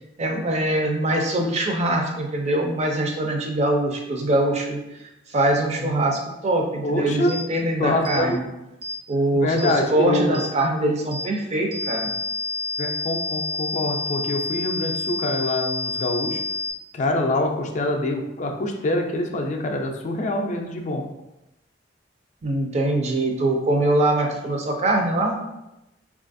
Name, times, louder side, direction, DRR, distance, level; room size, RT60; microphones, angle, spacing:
voice 1, 0.2-4.8 5.3-8.4 9.1-12.1 22.4-25.4, right 1 dB, 35° right, 1 dB, 0.5 m, -23 dB
voice 2, 6.8-7.3 7.8-8.4 9.3-10.4 12.8-16.4 16.9-21.0, left 1 dB, 40° left, 2 dB, 0.4 m, -25 dB
sound 1, 7.3-7.4 8.1-8.2 8.8-9.0 9.6-9.7 10.3-10.5 11.1-11.3 11.7-16.7, left 3 dB, 60° right, 0.9 m, -29 dB
3.9 x 2.4 x 2.5 m, 0.92 s
head